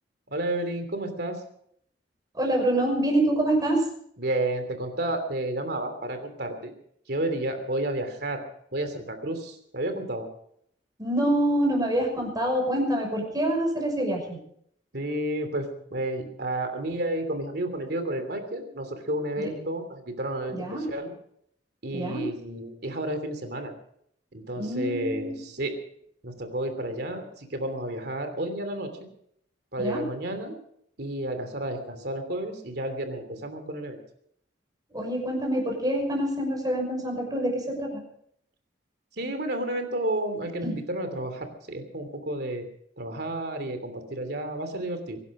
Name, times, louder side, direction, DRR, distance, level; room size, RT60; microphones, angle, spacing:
voice 1, 0.3-1.4 4.2-6.7 7.1-8.4 8.7-10.3 14.9-20.6 20.9-21.1 21.8-23.7 24.3-25.8 26.2-28.9 29.7-30.6 31.0-34.0 39.2-42.6 43.0-45.2, right 1 dB, 65° right, 7 dB, 3.0 m, -31 dB
voice 2, 2.3-3.8 11.0-14.4 19.4-19.5 20.5-20.9 21.9-22.3 24.6-25.4 29.8-30.0 34.9-38.0 40.6-40.8, right 1 dB, 20° right, 1 dB, 6.1 m, -26 dB
23.5 x 11.5 x 5.1 m, 0.68 s
head